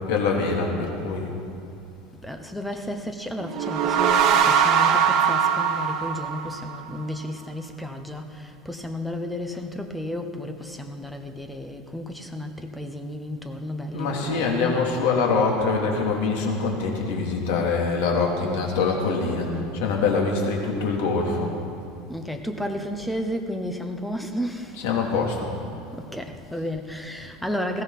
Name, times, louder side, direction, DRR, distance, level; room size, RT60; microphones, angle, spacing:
voice 1, 0.1-1.3 13.9-21.5 24.7-25.5, left 4 dB, 75° left, 0 dB, 3.0 m, -24 dB
voice 2, 2.2-14.5 22.1-24.9 25.9-27.8, left 1 dB, ahead, 5 dB, 0.7 m, -33 dB
sound 1, 3.4-7.0, right 7 dB, 40° right, 1.0 m, -21 dB
20.5 x 16.0 x 4.2 m, 2.5 s
cardioid pair, 175°, 0 cm